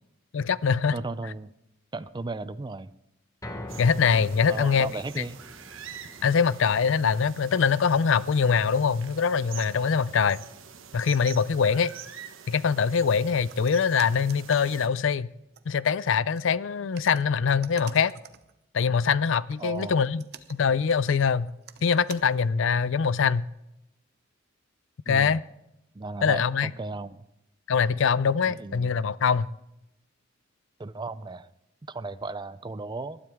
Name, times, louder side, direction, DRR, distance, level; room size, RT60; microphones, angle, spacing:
voice 1, 0.3-1.0 3.8-4.9 6.2-10.4 10.9-11.9 12.5-15.3 15.7-18.1 18.7-20.2 20.5-21.5 21.8-23.5 25.1-25.4 26.2-26.7 27.7-29.5, left 6 dB, 65° left, 0.5 m, -23 dB
voice 2, 0.9-1.5 1.9-2.9 4.5-5.4 19.6-20.0 25.1-25.4 25.9-27.2 28.5-28.9 30.8-31.5 31.9-33.2, right 3 dB, 20° right, 0.4 m, -35 dB
sound 1, 3.4-15.7 16.1-16.2 16.6-16.7, left 1 dB, 15° left, 1.2 m, -47 dB
sound 2, 3.7-14.9, right 8 dB, 70° right, 1.2 m, -46 dB
sound 3, 13.5-14.8 15.5-15.6 16.3-16.4 16.9-18.6 18.9-22.5, right 8 dB, 55° right, 0.8 m, -48 dB
20.0 x 12.5 x 3.6 m
head